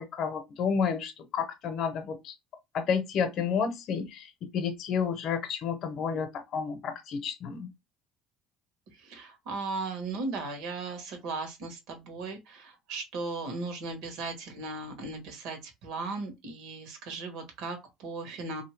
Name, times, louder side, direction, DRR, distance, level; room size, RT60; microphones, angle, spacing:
voice 1, 0.0-2.3 2.7-7.7, left 6 dB, 55° left, 0.7 m, -31 dB
voice 2, 8.9-18.6, right 3 dB, 75° right, 1.2 m, -37 dB
2.7 x 2.7 x 3.1 m
cardioid pair, 110°, 0 cm